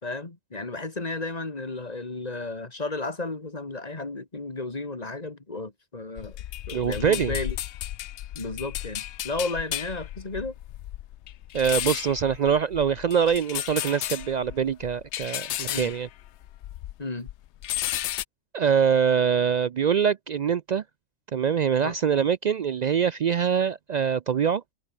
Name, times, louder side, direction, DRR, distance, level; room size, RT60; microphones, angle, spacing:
voice 1, 0.0-6.4 6.7-7.6 8.3-10.5 15.7-15.9 17.0-17.3 21.8-22.0, left 3 dB, 30° left, 2.4 m, -33 dB
sound 1, 6.2-17.0 17.3-18.2, left 13 dB, 70° left, 0.8 m, -34 dB
voice 2, 6.7-7.3 11.5-16.1 18.5-20.8 21.3-24.6, right 7 dB, 70° right, 0.4 m, -24 dB
omnidirectional pair, 1.3 m